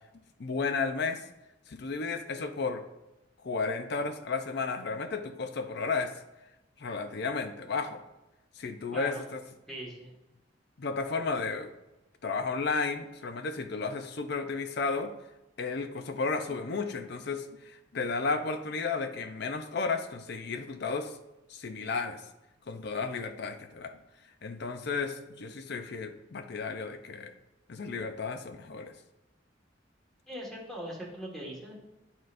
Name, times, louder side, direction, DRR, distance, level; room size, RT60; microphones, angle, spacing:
voice 1, 0.4-1.3 1.7-2.8 3.4-6.1 6.8-8.0 8.6-9.4 10.8-11.7 12.2-15.1 15.6-21.2 21.5-22.2 22.7-23.9 24.4-27.3 27.7-28.9, left 4 dB, 60° left, 8 dB, 0.5 m, -33 dB
voice 2, 8.9-9.2 9.7-10.1 30.3-31.8, equal, 5° left, -3 dB, 1.6 m, -40 dB
11.0 x 3.9 x 2.5 m, 0.98 s
head